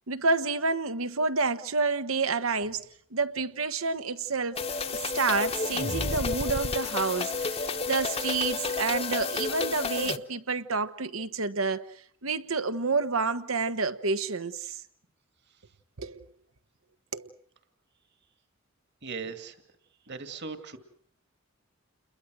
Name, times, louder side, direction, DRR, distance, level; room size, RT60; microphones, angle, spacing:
voice 1, 0.1-2.8 3.1-4.6 4.9-11.8 12.2-14.8 16.0-16.2 17.1-17.3, right 4 dB, 85° right, 1.4 m, -29 dB
sound 1, 4.6-10.2, left 4 dB, 30° left, 1.1 m, -31 dB
voice 2, 19.0-19.6 20.1-20.8, right 4 dB, 55° right, 2.3 m, -38 dB
29.5 x 22.0 x 6.3 m
head